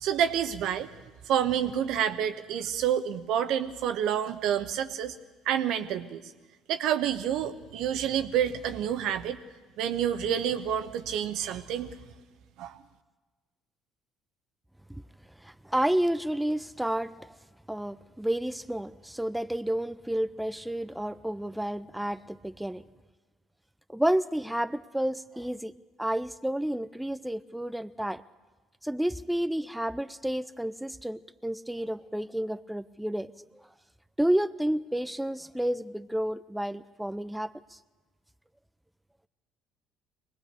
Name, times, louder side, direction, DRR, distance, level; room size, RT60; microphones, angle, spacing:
voice 1, 0.0-0.9 1.3-5.1 5.4-6.2 6.7-9.4 9.8-12.0 12.6-12.7, right 9 dB, 70° right, 9 dB, 1.1 m, -28 dB
voice 2, 15.4-17.3 17.7-22.8 23.9-25.7 26.0-28.2 28.8-33.4 34.2-37.8, right 1 dB, 5° right, 13 dB, 0.6 m, -30 dB
23.5 x 19.0 x 6.8 m, 1.3 s
hypercardioid pair, 60°, 0 cm